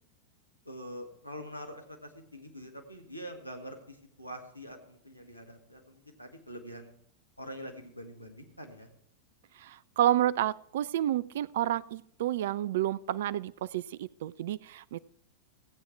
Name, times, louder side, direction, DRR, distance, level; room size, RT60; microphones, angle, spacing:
voice 1, 0.6-6.9 7.4-8.9, equal, 90° left, 4 dB, 1.7 m, -45 dB
voice 2, 9.6-15.0, right 12 dB, 55° right, 20 dB, 0.3 m, -30 dB
16.0 x 8.6 x 4.6 m, 0.70 s
figure-of-eight pair, 90°, 0 cm